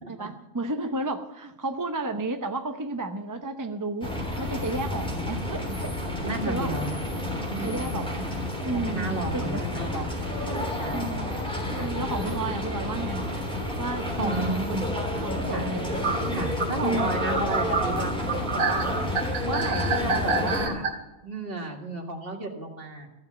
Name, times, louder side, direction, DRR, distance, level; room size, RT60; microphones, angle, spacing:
voice 1, 0.2-4.1 4.4-5.9 6.4-6.7 7.6-9.7 9.9-10.1 10.9-11.3 11.7-13.3 13.8-14.9 15.2-16.0 16.8-17.2 20.0-20.2, right 2 dB, 20° right, 6 dB, 0.6 m, -32 dB
sound 1, 4.0-20.7, left 1 dB, 5° left, 3.4 m, -30 dB
voice 2, 6.2-6.9 7.4-8.0 8.9-11.1 11.8-11.9 14.2-14.9 15.5-15.7 16.3-18.9 19.4-20.9 21.2-23.1, right 2 dB, 45° right, 1 dB, 2.2 m, -33 dB
sound 2, 13.7-13.8 15.2-15.3 16.0-20.9, right 4 dB, 75° right, 2.2 m, -28 dB
15.0 x 7.1 x 8.2 m, 1.0 s
omnidirectional pair, 1.4 m